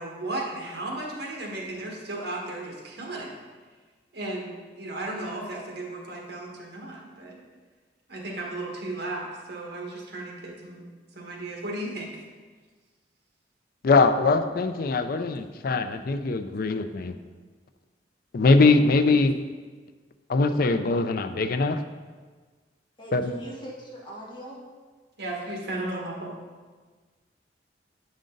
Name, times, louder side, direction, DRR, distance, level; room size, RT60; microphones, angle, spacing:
voice 1, 0.0-3.3 4.1-7.4 8.1-10.8 11.1-12.2 25.2-26.3, right 2 dB, 60° right, -1 dB, 1.5 m, -35 dB
voice 2, 13.8-17.2 18.3-19.4 20.3-21.8 23.1-23.3, left 3 dB, 55° left, 9 dB, 0.4 m, -22 dB
voice 3, 23.0-24.6, equal, 25° left, -5 dB, 1.7 m, -40 dB
8.8 x 5.2 x 3.8 m, 1.4 s
head